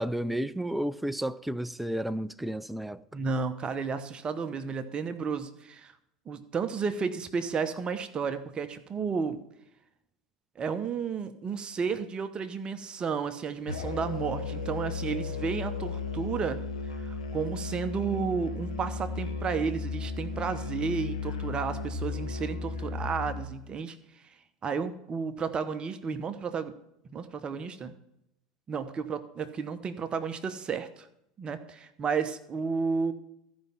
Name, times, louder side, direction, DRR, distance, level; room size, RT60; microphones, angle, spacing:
voice 1, 0.0-3.0, right 1 dB, 5° right, 0.4 m, -32 dB
voice 2, 3.1-5.9 6.3-9.4 10.6-16.6 17.0-24.0 24.6-26.7 27.0-27.9 28.7-31.1 31.4-33.1, right 5 dB, 30° right, 1.0 m, -32 dB
Musical instrument, 13.7-23.5, left 4 dB, 90° left, 1.0 m, -35 dB
13.5 x 5.3 x 5.7 m
hypercardioid pair, 85°, 3 cm